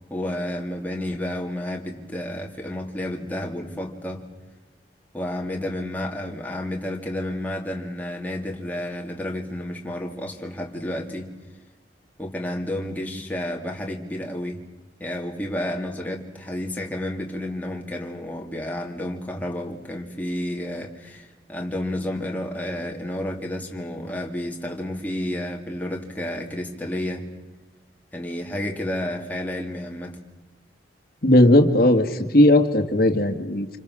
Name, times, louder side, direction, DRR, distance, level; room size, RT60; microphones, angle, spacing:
voice 1, 0.1-4.2 5.1-11.3 12.2-14.6 15.0-27.3 28.1-30.2, left 1 dB, 10° left, 1 dB, 2.3 m, -31 dB
voice 2, 31.2-33.8, left 1 dB, 55° left, 5 dB, 2.0 m, -17 dB
28.0 x 25.5 x 6.3 m, 1.3 s
head